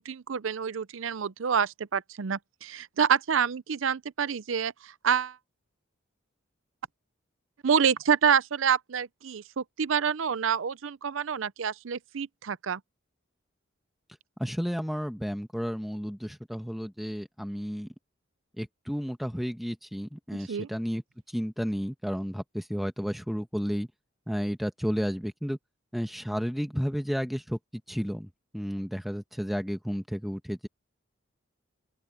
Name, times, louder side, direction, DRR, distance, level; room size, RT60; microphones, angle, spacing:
voice 1, 0.0-5.4 7.6-12.8 20.3-20.7, right 7 dB, 80° right, 0.5 m, -27 dB
voice 2, 14.4-17.9 18.6-23.9 24.3-25.6 25.9-30.7, equal, ahead, 1.4 m, -32 dB
open air
head